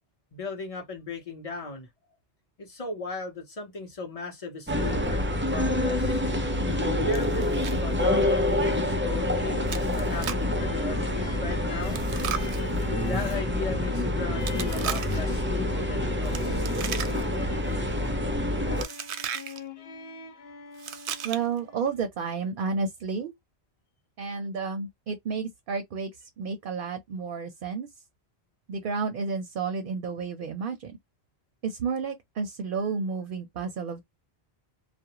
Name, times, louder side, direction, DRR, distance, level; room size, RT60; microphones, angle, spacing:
voice 1, 0.3-1.9 2.6-6.2 7.0-12.0 13.0-16.6, left 3 dB, 35° left, 0.9 m, -37 dB
sound 1, 4.7-18.8, left 1 dB, 15° right, 0.4 m, -27 dB
Chewing mastication, 7.1-7.8 8.1-8.2 8.7-8.8 9.7-10.5 11.8-13.4 14.4-15.4 16.2-17.4 17.7-18.1 18.8-19.6 20.7-21.6, right 9 dB, 90° right, 0.8 m, -36 dB
sound 2, 10.6-22.0, left 2 dB, 70° left, 1.0 m, -44 dB
voice 2, 21.2-23.3 24.2-26.1 26.4-27.9 28.7-31.0 31.6-34.0, right 5 dB, 60° right, 0.7 m, -31 dB
2.4 x 2.1 x 2.8 m
omnidirectional pair, 1.1 m